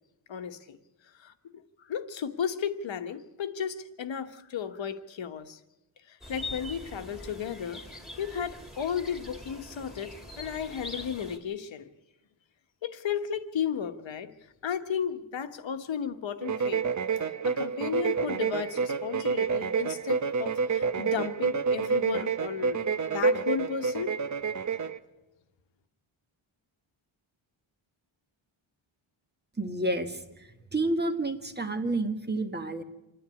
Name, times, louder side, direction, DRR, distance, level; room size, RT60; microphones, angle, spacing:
voice 1, 0.3-0.8 1.2-1.3 1.8-5.6 6.1-7.8 8.2-10.1 10.4-11.9 12.8-14.3 14.6-16.8 17.2-22.8 23.1-24.1, left 8 dB, 65° left, 8 dB, 1.3 m, -34 dB
sound 1, 6.2-11.4, left 1 dB, ahead, 2.5 m, -43 dB
sound 2, 16.4-25.0, right 5 dB, 35° right, 0.8 m, -28 dB
voice 2, 29.6-32.8, right 2 dB, 20° right, 6 dB, 1.4 m, -30 dB
26.5 x 10.0 x 9.6 m, 0.96 s
wide cardioid pair, 155°, 49 cm